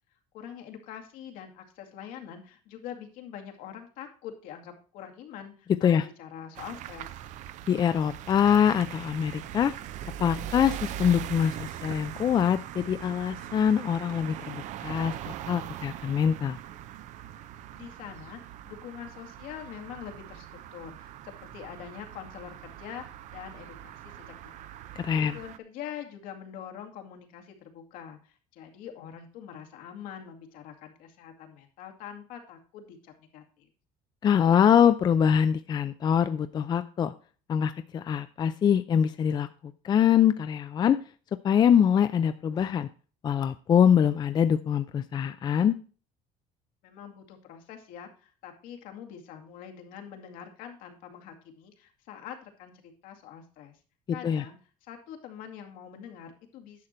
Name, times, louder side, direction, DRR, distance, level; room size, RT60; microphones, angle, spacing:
voice 1, 0.3-7.1 17.7-18.4 18.6-20.5 20.7-23.0 23.3-33.7 46.8-53.8 54.1-56.9, left 9 dB, 80° left, 4 dB, 2.1 m, -44 dB
sound 1, 6.5-25.6, right 11 dB, 60° right, 0.6 m, -41 dB
voice 2, 7.7-9.7 10.2-16.6 25.0-25.4 34.2-37.1 37.5-39.5 39.8-41.0 41.4-42.9 43.2-45.7 54.2-54.4, left 8 dB, 30° left, 11 dB, 0.4 m, -24 dB
10.5 x 6.5 x 4.3 m, 0.37 s
cardioid pair, 145°, 14 cm